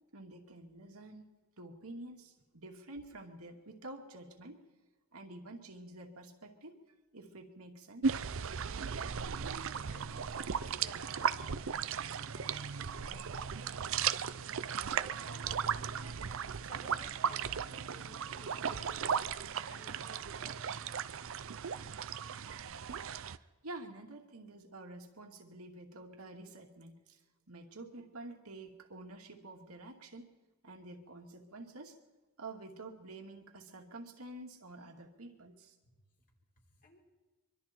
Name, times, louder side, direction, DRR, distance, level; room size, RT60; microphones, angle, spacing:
voice 1, 0.1-1.3 1.6-4.6 5.1-6.8 7.1-8.2 23.4-27.2 27.5-30.3 30.6-32.0 32.4-35.7, right 2 dB, 80° right, 2 dB, 2.5 m, -49 dB
sound 1, 8.0-23.4, right 7 dB, 65° right, 0.6 m, -36 dB
voice 2, 9.9-19.3 19.7-21.0 35.8-36.0 36.7-37.0, left 2 dB, 40° left, -1 dB, 4.8 m, -59 dB
24.5 x 24.0 x 4.5 m, 1.2 s
head